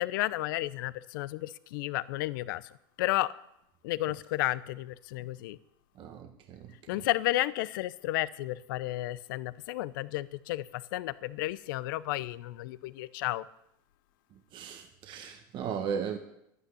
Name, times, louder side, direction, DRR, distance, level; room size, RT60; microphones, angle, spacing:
voice 1, 0.0-2.6 3.0-3.3 3.8-5.6 6.9-13.4, left 17 dB, 75° left, 17 dB, 0.7 m, -32 dB
voice 2, 5.9-7.1 14.3-16.2, right 7 dB, 45° right, 5 dB, 1.5 m, -37 dB
11.5 x 9.4 x 9.8 m, 0.80 s
supercardioid pair, 115°, 11 cm